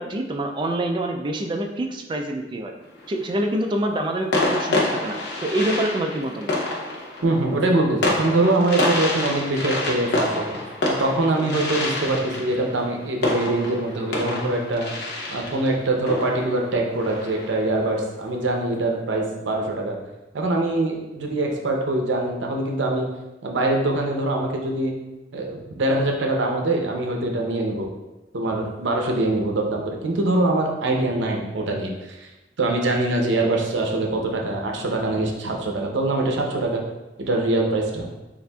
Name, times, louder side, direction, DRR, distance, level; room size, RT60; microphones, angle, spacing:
voice 1, 0.0-2.7 3.1-6.5, right 1 dB, 25° right, 3 dB, 0.4 m, -26 dB
sound 1, 2.8-3.4 4.3-17.7, left 2 dB, 65° left, 0.7 m, -27 dB
voice 2, 7.2-10.5 10.8-14.9 15.3-20.0 20.3-23.1 23.4-24.9 25.3-27.9 28.3-32.3 32.6-36.8 37.2-38.1, right 2 dB, 80° right, 1 dB, 0.6 m, -23 dB
6.8 x 2.5 x 2.3 m, 1.0 s
head